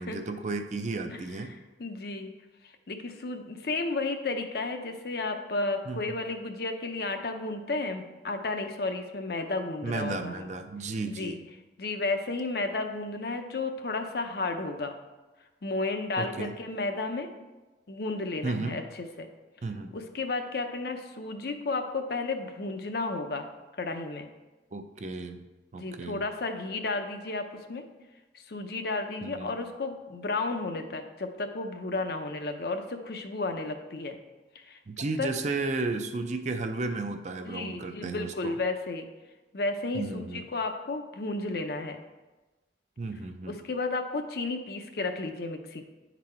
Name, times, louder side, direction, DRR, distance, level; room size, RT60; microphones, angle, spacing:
voice 1, 0.0-1.5 5.9-6.2 9.8-11.4 16.2-16.5 18.4-18.8 19.6-19.9 24.7-25.4 25.7-26.2 29.2-29.6 34.9-38.6 39.9-40.4 43.0-43.6, right 3 dB, 40° right, 7 dB, 0.5 m, -33 dB
voice 2, 1.5-2.3 2.9-10.5 11.1-11.4 11.8-14.9 15.6-17.3 17.9-19.3 19.9-23.5 23.8-24.3 25.7-27.8 28.3-34.2 34.5-35.3 37.5-39.1 39.5-42.0 43.5-45.8, left 3 dB, 60° left, 6 dB, 0.6 m, -33 dB
9.7 x 4.1 x 4.3 m, 1.1 s
head